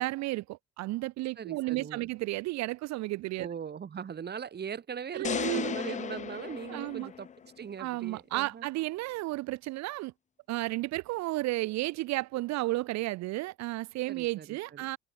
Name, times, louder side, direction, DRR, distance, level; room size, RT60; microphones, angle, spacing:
voice 1, 0.0-3.5 5.1-5.8 6.7-7.1 7.8-10.1 10.5-15.0, right 19 dB, 65° right, 0.6 m, -33 dB
voice 2, 1.4-2.1 3.4-7.3 7.6-8.7 14.1-14.9, right 7 dB, 35° right, 6.3 m, -40 dB
sound 1, 5.2-7.5, left 7 dB, 25° left, 0.6 m, -35 dB
cardioid pair, 130°, 29 cm